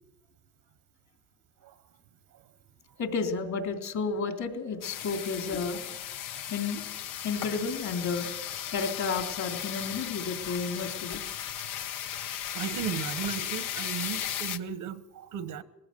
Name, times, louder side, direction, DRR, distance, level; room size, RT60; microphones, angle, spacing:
voice 1, 3.0-5.8 6.5-6.8 7.2-8.3 8.7-11.2, left 4 dB, 60° left, 5 dB, 3.3 m, -31 dB
sound 1, 4.8-14.6, left 10 dB, 85° left, 1.1 m, -36 dB
voice 2, 12.1-15.6, right 8 dB, 75° right, 13 dB, 1.4 m, -36 dB
20.5 x 16.0 x 7.8 m, 0.96 s
cardioid pair, 85°, 31 cm